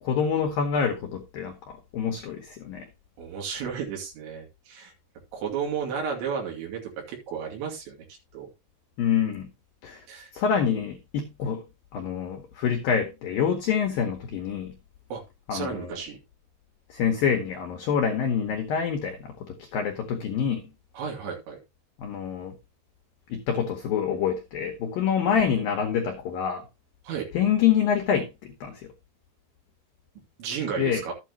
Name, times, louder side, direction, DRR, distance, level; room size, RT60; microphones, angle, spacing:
voice 1, 0.0-2.9 9.0-9.5 9.8-10.0 10.3-11.6 11.9-14.7 15.5-16.0 16.9-20.7 22.0-22.5 23.3-26.6 27.3-28.9 30.8-31.0, left 7 dB, 85° left, 2.0 m, -26 dB
voice 2, 3.2-4.9 5.3-6.8 7.1-8.0 8.3-8.5 10.1-10.3 15.1-15.2 15.5-16.2 20.9-21.6 27.0-27.3 30.4-31.1, right 6 dB, 65° right, 4.7 m, -33 dB
12.5 x 9.0 x 2.9 m
omnidirectional pair, 5.8 m